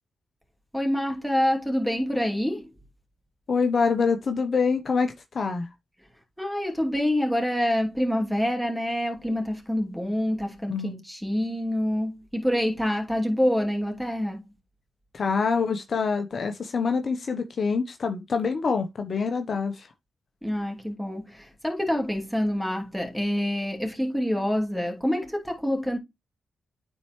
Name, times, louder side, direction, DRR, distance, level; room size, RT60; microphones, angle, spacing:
voice 1, 0.7-2.7 6.4-14.4 20.4-26.0, equal, ahead, 2.9 m, -26 dB
voice 2, 3.5-5.7 10.7-11.0 15.1-19.9, left 5 dB, 55° left, 0.9 m, -26 dB
9.5 x 4.5 x 3.2 m
supercardioid pair, 45°, 0 cm